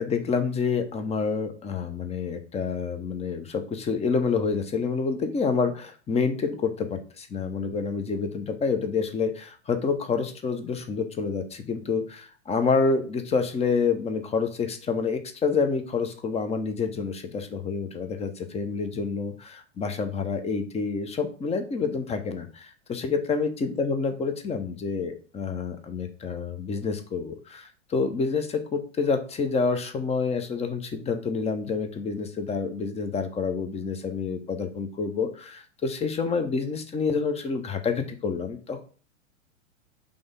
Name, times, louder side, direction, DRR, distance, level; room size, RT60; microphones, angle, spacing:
voice 1, 0.0-38.8, left 5 dB, 15° left, 8 dB, 0.9 m, -28 dB
5.3 x 3.4 x 5.2 m, 0.39 s
figure-of-eight pair, 100°, 39 cm